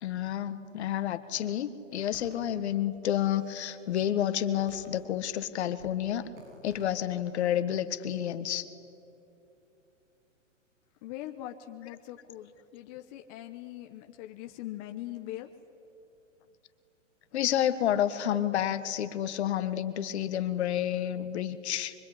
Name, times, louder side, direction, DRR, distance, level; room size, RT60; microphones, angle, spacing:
voice 1, 0.0-6.3 6.6-8.7 17.3-21.9, left 11 dB, 55° left, 11 dB, 1.7 m, -30 dB
sound 1, 2.1-2.4 3.1-3.8 4.7-5.4 5.8-6.0 6.3-6.9, right 3 dB, 60° right, 4.7 m, -54 dB
voice 2, 11.0-15.5, left 14 dB, 30° left, 5 dB, 1.1 m, -42 dB
24.5 x 24.0 x 9.9 m, 2.8 s
hypercardioid pair, 145°, 39 cm